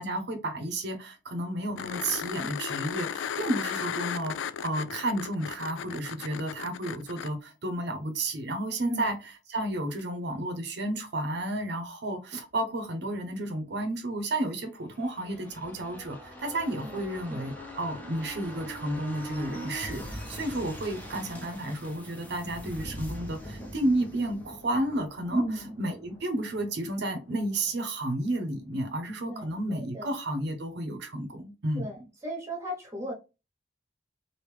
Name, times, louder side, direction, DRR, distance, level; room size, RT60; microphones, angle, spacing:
voice 1, 0.0-9.2 9.5-31.9, right 1 dB, 60° right, 0.7 m, -32 dB
sound 1, 1.8-7.3 10.0-10.1, left 8 dB, 85° left, 0.3 m, -35 dB
sound 2, 14.8-28.3 28.6-28.7, equal, 10° left, 0.7 m, -43 dB
voice 2, 25.3-25.7 29.3-30.1 31.8-33.1, equal, 15° right, 1.0 m, -35 dB
3.1 x 2.6 x 3.3 m
head